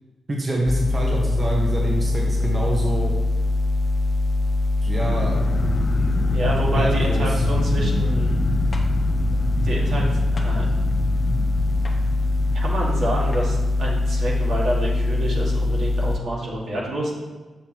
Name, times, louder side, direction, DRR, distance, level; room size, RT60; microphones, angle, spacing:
voice 1, 0.3-3.1 4.8-5.5 6.1-6.3 6.7-7.4, right 1 dB, 35° right, -2 dB, 1.2 m, -26 dB
sound 1, 0.7-16.2, left 2 dB, 20° left, 0.3 m, -22 dB
sound 2, 5.0-14.0, left 1 dB, 65° left, 1.0 m, -28 dB
voice 2, 6.2-8.3 9.6-10.0 10.3-10.6 12.5-17.1, right 1 dB, 70° right, -4 dB, 1.9 m, -28 dB
sound 3, 8.7-8.9 10.4-10.5 11.8-12.0 13.3-13.5, left 2 dB, 40° left, 1.0 m, -39 dB
6.7 x 6.6 x 3.0 m, 1.3 s
cardioid pair, 80°, 0 cm